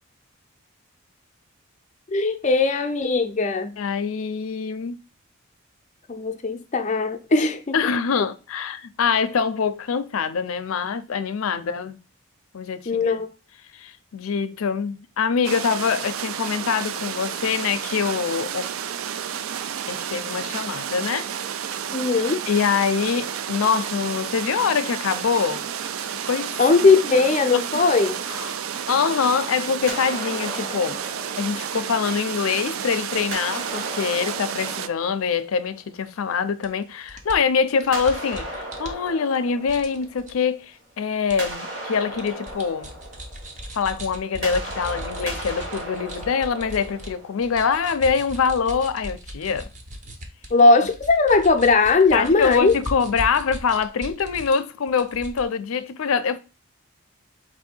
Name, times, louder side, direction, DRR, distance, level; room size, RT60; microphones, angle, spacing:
voice 1, 2.1-3.7 6.1-7.8 12.9-13.3 21.9-22.4 26.6-28.1 50.5-52.8, left 3 dB, 35° left, 0.5 m, -19 dB
voice 2, 3.8-5.0 7.7-12.0 12.5-13.2 13.7-18.6 19.9-21.3 22.5-25.6 26.3-26.6 27.5-27.6 28.3-28.6 28.9-31.0 31.4-42.9 43.7-49.7 52.1-56.4, left 6 dB, 85° left, 0.5 m, -24 dB
sound 1, 15.4-34.9, right 9 dB, 85° right, 0.4 m, -31 dB
sound 2, 27.8-29.4 29.9-32.7 33.2-36.1 37.9-40.7 41.0-47.7, right 1 dB, 60° right, 2.0 m, -37 dB
sound 3, 36.6-36.7 37.1-39.4 39.7-40.3 41.3-41.5 41.9-47.1 47.4-54.6 54.9-55.4, equal, 35° right, 0.8 m, -38 dB
4.4 x 2.7 x 4.3 m
head